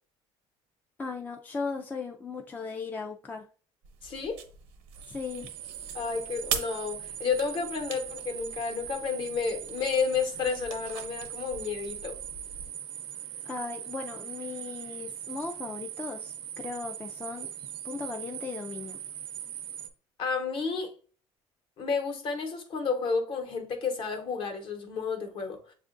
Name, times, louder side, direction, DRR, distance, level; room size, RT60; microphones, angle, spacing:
voice 1, 1.0-3.5 5.1-5.5 13.5-17.5 17.8-19.0, left 4 dB, 15° left, 0.4 m, -37 dB
sound 1, 3.8-12.7, right 7 dB, 90° right, 0.9 m, -42 dB
voice 2, 4.0-4.4 5.9-12.1 20.2-20.9 21.8-25.6, left 5 dB, 50° left, 1.0 m, -31 dB
sound 2, 4.9-19.9, right 10 dB, 60° right, 0.5 m, -41 dB
7.1 x 2.4 x 2.5 m
cardioid pair, 130°, 10 cm